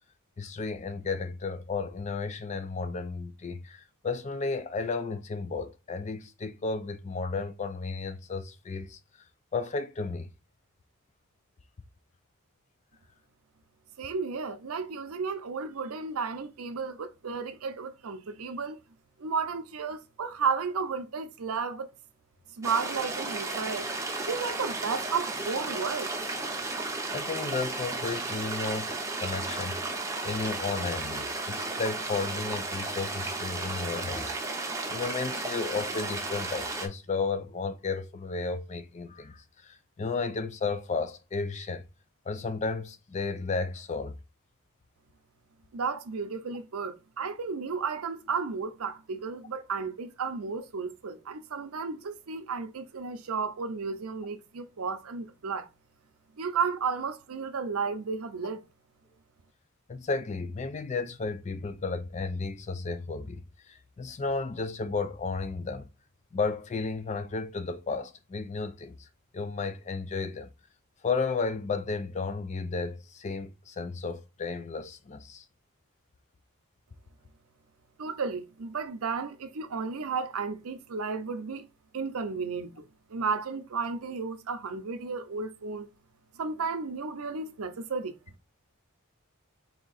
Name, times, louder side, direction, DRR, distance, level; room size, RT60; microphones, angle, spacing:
voice 1, 0.4-9.0 9.5-10.3 27.1-28.9 29.2-29.8 30.2-41.8 42.3-44.2 59.9-65.8 66.3-69.1 69.3-70.5 71.0-75.4, left 4 dB, 30° left, 0.4 m, -33 dB
voice 2, 14.0-18.8 19.2-21.9 22.6-23.9 24.3-26.1 45.7-55.7 56.4-58.6 78.0-81.7 81.9-82.8 83.1-85.9 86.4-88.1, right 5 dB, 70° right, 0.6 m, -33 dB
sound 1, 22.6-36.9, right 3 dB, 15° right, 0.6 m, -34 dB
3.6 x 2.8 x 4.0 m
head